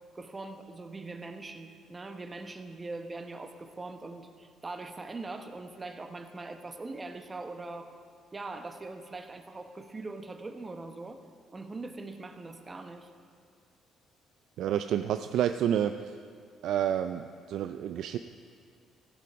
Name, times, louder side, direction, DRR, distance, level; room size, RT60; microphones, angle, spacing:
voice 1, 0.1-7.9 8.3-11.2 11.5-13.1, right 3 dB, 20° right, 7 dB, 0.8 m, -41 dB
voice 2, 14.6-15.9 16.6-18.2, right 10 dB, 70° right, 8 dB, 0.3 m, -29 dB
16.5 x 6.9 x 5.1 m, 2.2 s
cardioid pair, 110°, 0 cm